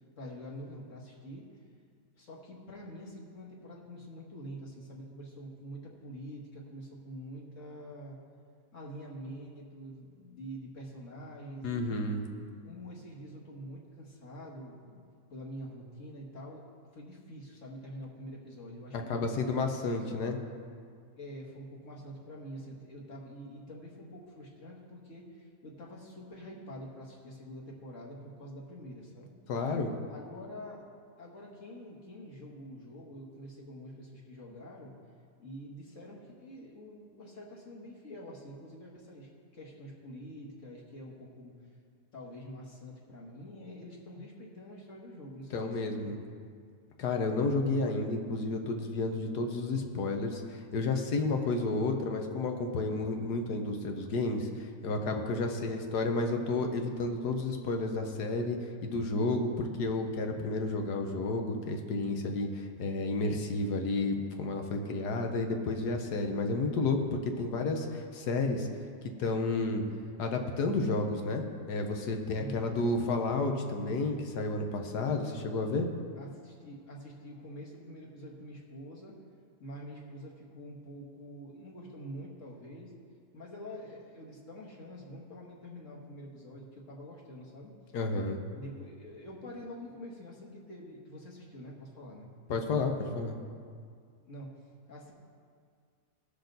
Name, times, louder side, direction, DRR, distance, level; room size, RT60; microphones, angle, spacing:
voice 1, 0.2-1.4 2.2-8.2 8.7-11.9 12.6-15.0 15.3-16.6 16.9-19.5 20.1-20.2 21.2-29.3 30.1-30.8 31.2-35.0 35.4-41.5 42.1-46.2 51.5-52.0 72.4-72.9 76.1-79.2 79.6-82.9 83.3-87.7 88.5-92.3 94.3-95.1, equal, 50° left, -2 dB, 1.9 m, -46 dB
voice 2, 11.6-12.2 18.9-20.4 29.5-29.9 45.5-46.1 47.0-68.7 69.2-69.8 70.2-75.9 87.9-88.4 92.5-93.4, left 3 dB, 70° left, 4 dB, 1.5 m, -31 dB
18.0 x 6.6 x 3.9 m, 2.1 s
omnidirectional pair, 1.8 m